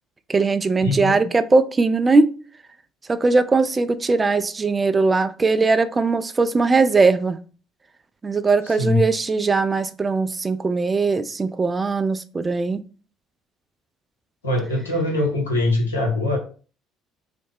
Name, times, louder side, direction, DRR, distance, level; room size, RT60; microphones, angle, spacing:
voice 1, 0.3-2.3 3.1-7.4 8.2-12.8, right 3 dB, 25° right, 0.3 m, -20 dB
voice 2, 0.8-1.3 8.6-9.0 14.4-16.4, left 2 dB, 90° left, 0.8 m, -22 dB
3.2 x 2.0 x 3.5 m
hypercardioid pair, 55°, 0 cm